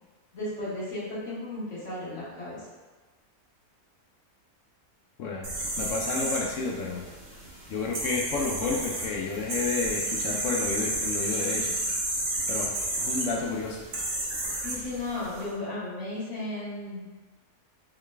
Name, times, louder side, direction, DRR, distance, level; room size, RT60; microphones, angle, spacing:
voice 1, 0.3-2.6 14.6-17.0, left 2 dB, 50° left, -9 dB, 1.8 m, -34 dB
sound 1, 5.4-15.4, right 1 dB, 50° right, 1.2 m, -32 dB
voice 2, 5.8-7.0 7.7-11.7 12.5-12.7 13.0-13.8, left 4 dB, 65° left, -1 dB, 0.8 m, -30 dB
3.9 x 3.4 x 3.2 m, 1.3 s
omnidirectional pair, 1.6 m